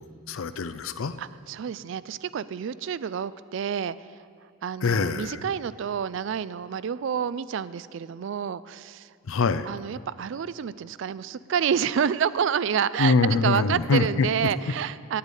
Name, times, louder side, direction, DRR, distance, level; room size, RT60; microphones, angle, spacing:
voice 1, 0.0-1.2 4.8-5.4 9.3-9.7 13.0-14.3, left 4 dB, 80° left, 13 dB, 0.5 m, -24 dB
voice 2, 1.2-4.1 4.6-9.1 9.7-15.2, right 7 dB, 65° right, 17 dB, 0.3 m, -28 dB
8.5 x 8.2 x 9.1 m, 2.4 s
head